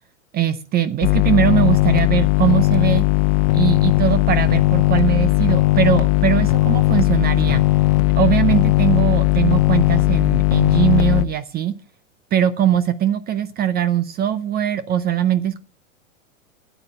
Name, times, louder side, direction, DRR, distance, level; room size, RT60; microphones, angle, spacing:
voice 1, 0.3-3.1 3.5-7.6 8.2-11.8 12.3-15.6, right 10 dB, 25° right, 15 dB, 0.6 m, -21 dB
sound 1, 1.0-11.3, left 16 dB, 45° left, 1.0 m, -17 dB
13.0 x 9.1 x 4.8 m, 0.34 s
hypercardioid pair, 115°, 41 cm